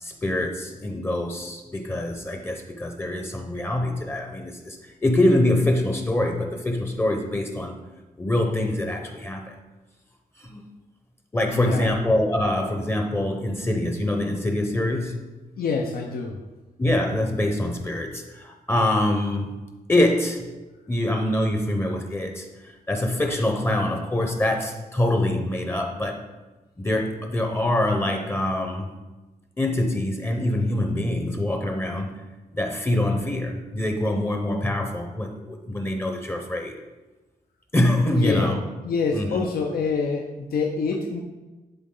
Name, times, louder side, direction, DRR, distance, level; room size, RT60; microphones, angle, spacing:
voice 1, 0.0-7.8 8.2-9.5 10.4-10.6 11.3-15.2 16.8-19.5 19.9-20.5 20.9-26.2 26.8-28.9 29.6-32.1 32.5-36.7 37.7-38.6 39.1-39.5, left 1 dB, 15° left, 3 dB, 0.6 m, -24 dB
voice 2, 11.5-11.9 15.6-16.4 38.1-38.5 38.8-41.2, left 5 dB, 85° left, 2 dB, 0.7 m, -26 dB
11.5 x 4.0 x 3.7 m, 1.2 s
wide cardioid pair, 170°, 15 cm